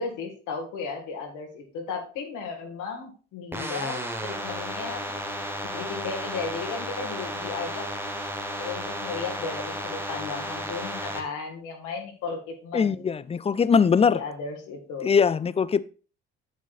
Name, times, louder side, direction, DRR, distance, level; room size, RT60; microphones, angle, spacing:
voice 1, 0.0-5.0 5.7-7.9 8.5-13.1 14.1-15.1, left 5 dB, 70° left, 1.9 m, -35 dB
sound 1, 3.5-11.2, equal, 5° right, 1.3 m, -33 dB
voice 2, 12.7-14.2 15.0-15.8, left 6 dB, 20° left, 0.4 m, -21 dB
8.5 x 7.4 x 2.5 m
hypercardioid pair, 50°, 32 cm